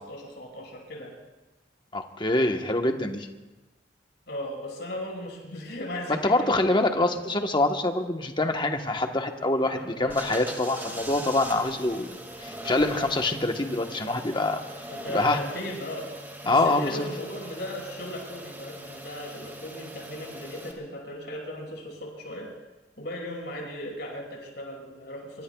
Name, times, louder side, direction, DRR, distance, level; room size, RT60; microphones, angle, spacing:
voice 1, 0.1-1.1 4.3-7.2 9.6-10.1 10.8-11.2 14.9-16.1 16.4-22.5 23.0-25.4, left 1 dB, 70° left, -1 dB, 5.9 m, -37 dB
voice 2, 1.9-3.3 6.1-14.6 15.1-15.4 16.5-17.0, left 2 dB, 25° left, 5 dB, 1.2 m, -25 dB
sound 1, 10.1-20.7, right 1 dB, 10° right, 2.2 m, -41 dB
25.0 x 24.0 x 2.4 m, 1.1 s
head